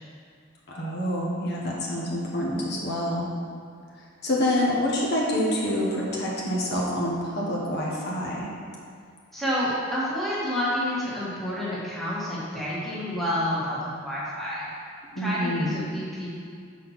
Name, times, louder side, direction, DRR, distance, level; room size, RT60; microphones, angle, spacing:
voice 1, 0.7-3.3 4.2-8.5 15.1-15.8, left 1 dB, 55° left, -4 dB, 1.0 m, -27 dB
voice 2, 9.3-14.7 15.2-16.3, left 1 dB, ahead, -8 dB, 1.4 m, -29 dB
6.4 x 4.2 x 5.6 m, 2.3 s
head